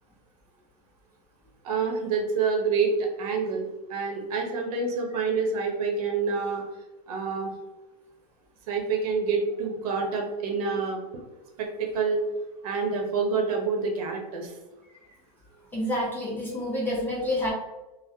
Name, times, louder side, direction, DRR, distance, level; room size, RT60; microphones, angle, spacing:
voice 1, 1.6-6.6 7.1-7.5 8.7-11.0 11.6-12.3 12.6-14.5, right 4 dB, 65° right, 2 dB, 0.8 m, -27 dB
voice 2, 15.7-17.5, left 1 dB, 10° left, -6 dB, 0.6 m, -28 dB
3.5 x 2.0 x 2.7 m, 1.1 s
supercardioid pair, 155°, 20 cm